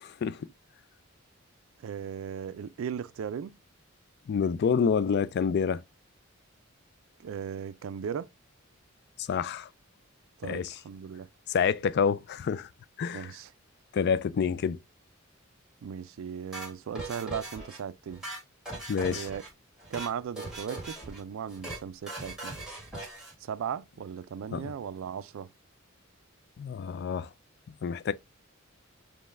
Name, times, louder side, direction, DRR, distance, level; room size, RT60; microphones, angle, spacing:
voice 1, 1.8-3.6 7.2-8.3 10.4-11.3 13.1-13.5 15.8-18.2 19.1-19.4 19.9-22.5 23.4-25.5, right 7 dB, 70° right, 0.3 m, -37 dB
voice 2, 4.3-5.8 9.2-9.7 10.4-10.7 11.5-12.7 13.0-13.3 13.9-14.8 18.9-19.3 24.5-24.7 26.6-27.3 27.8-28.1, left 6 dB, 50° left, 0.3 m, -28 dB
sound 1, 16.5-17.8 18.1-19.5 19.8-20.1 20.4-21.2 21.5-21.8 22.1-23.3, right 2 dB, 5° right, 1.5 m, -39 dB
5.2 x 2.2 x 3.3 m
head